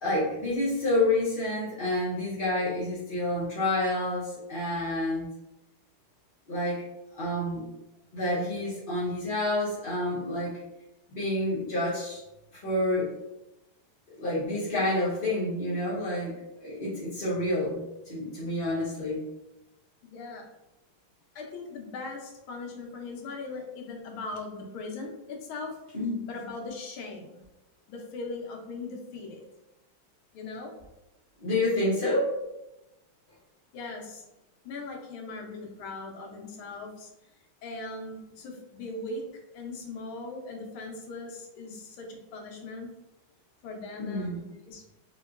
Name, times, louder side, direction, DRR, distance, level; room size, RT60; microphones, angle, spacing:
voice 1, 0.0-5.3 6.5-6.8 7.1-7.6 8.1-10.5 11.1-12.2 12.6-13.1 14.2-19.2 25.9-26.2 31.4-32.3 44.0-44.4, left 1 dB, 55° left, -9 dB, 0.5 m, -28 dB
voice 2, 20.0-20.5 21.3-25.7 26.2-27.4 27.9-29.5 30.3-30.7 33.7-34.2 34.6-37.1 37.6-39.3 39.5-42.9 43.6-44.8, left 3 dB, 80° left, 1 dB, 1.5 m, -39 dB
3.6 x 2.9 x 2.4 m, 0.95 s
omnidirectional pair, 2.3 m